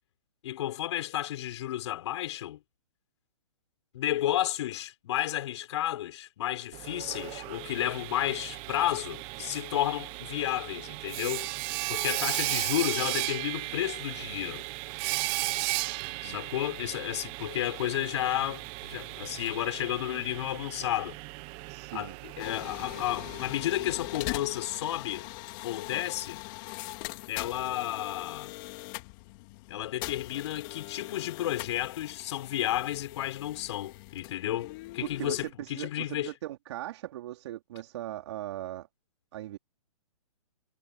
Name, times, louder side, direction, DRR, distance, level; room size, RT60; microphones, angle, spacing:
voice 1, 0.4-2.6 3.9-11.5 11.9-14.6 16.2-21.2 21.9-25.3 25.6-26.4 27.3-28.5 29.7-36.3, left 13 dB, 50° left, 5.6 m, -32 dB
Sawing, 6.7-24.5, right 25 dB, 30° right, 1.5 m, -36 dB
voice 2, 21.7-22.2 35.0-38.9 39.3-39.6, right 14 dB, 50° right, 4.3 m, -39 dB
sound 1, 22.4-35.5, left 26 dB, 35° left, 3.4 m, -41 dB
hypercardioid pair, 140°, 18 cm